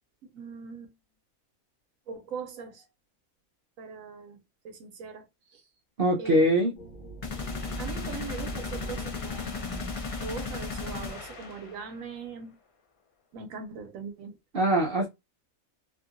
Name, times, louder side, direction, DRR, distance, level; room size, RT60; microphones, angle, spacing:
voice 1, 0.2-0.9 2.1-2.9 3.8-4.4 4.6-5.6 6.2-6.4 7.8-12.6 13.3-14.4, right 5 dB, 75° right, 1.0 m, -41 dB
voice 2, 6.0-6.7 14.5-15.1, equal, 55° right, 0.7 m, -22 dB
sound 1, 6.8-12.2, right 3 dB, 35° left, 1.4 m, -43 dB
sound 2, 7.2-12.0, left 4 dB, 65° left, 0.3 m, -35 dB
2.8 x 2.7 x 2.4 m
omnidirectional pair, 1.5 m